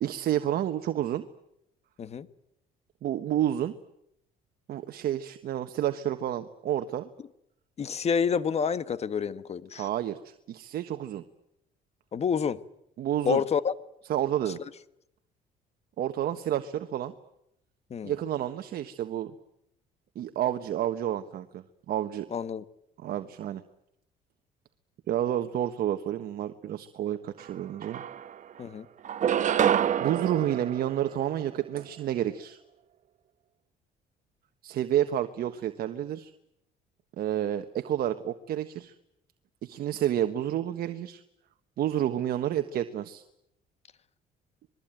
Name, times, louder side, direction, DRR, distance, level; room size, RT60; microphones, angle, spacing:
voice 1, 0.0-1.2 3.0-3.7 4.7-7.1 9.8-11.2 13.0-13.4 14.1-14.6 16.0-17.1 18.0-19.3 20.1-22.3 23.0-23.6 25.1-28.0 30.0-32.6 34.6-36.3 37.2-38.9 39.6-41.2 41.8-43.2, right 11 dB, 65° right, 1.4 m, -30 dB
voice 2, 7.8-9.9 12.1-12.6 13.2-13.7 17.9-18.2 22.3-22.6 28.6-28.9, left 6 dB, 40° left, 1.4 m, -28 dB
sound 1, 27.4-27.5 27.8-28.6 29.0-31.6, right 9 dB, 45° right, 1.1 m, -28 dB
27.0 x 21.5 x 9.1 m
cardioid pair, 110°, 17 cm